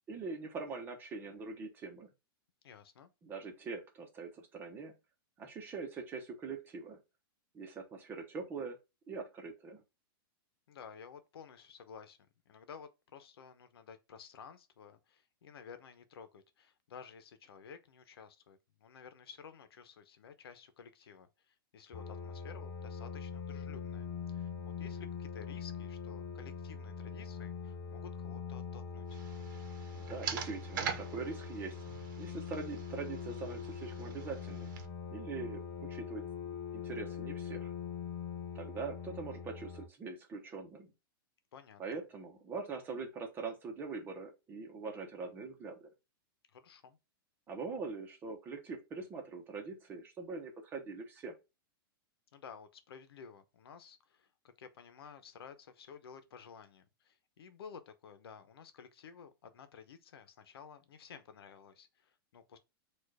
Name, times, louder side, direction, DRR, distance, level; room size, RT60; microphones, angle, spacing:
voice 1, 0.1-2.1 3.2-4.9 5.4-7.0 7.5-8.8 9.1-9.8 29.9-31.8 32.2-34.7 35.1-36.2 36.7-37.7 38.5-40.9 41.8-45.9 47.5-51.3, right 4 dB, 15° right, 0.9 m, -43 dB
voice 2, 2.6-3.1 10.7-12.2 12.5-29.2 41.5-42.0 46.5-47.0 52.3-62.6, left 6 dB, 85° left, 0.9 m, -53 dB
sound 1, 21.9-39.9, left 6 dB, 25° left, 0.5 m, -43 dB
sound 2, 29.1-34.9, right 7 dB, 55° right, 1.0 m, -44 dB
4.4 x 2.5 x 4.7 m
supercardioid pair, 160°, 12 cm